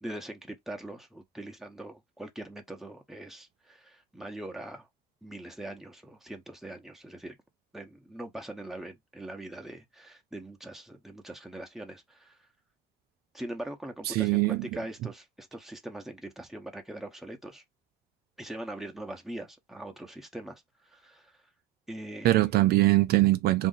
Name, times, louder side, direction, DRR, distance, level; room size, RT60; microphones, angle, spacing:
voice 1, 0.0-4.9 5.2-7.4 7.7-12.4 13.3-17.6 18.4-21.4 21.9-22.5, right 1 dB, ahead, 0.9 m, -42 dB
voice 2, 14.1-14.6 22.2-23.7, right 17 dB, 70° right, 0.4 m, -22 dB
2.7 x 2.5 x 3.8 m
cardioid pair, 110°, 17 cm